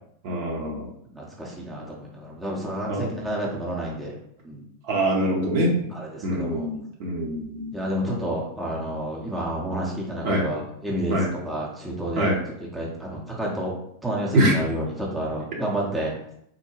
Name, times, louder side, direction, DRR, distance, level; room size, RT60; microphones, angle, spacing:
voice 1, 0.2-0.9 2.8-3.0 4.8-5.8 6.2-8.2 10.2-10.4 11.1-11.3 12.1-12.4 14.3-14.5, right 1 dB, 45° right, -2 dB, 0.9 m, -24 dB
voice 2, 1.1-4.1 4.4-4.6 5.9-6.7 7.7-11.2 11.4-12.4 12.7-13.7 14.0-16.1, right 1 dB, 10° right, -4 dB, 0.8 m, -30 dB
3.7 x 2.1 x 3.2 m, 0.72 s
figure-of-eight pair, 90°, 0 cm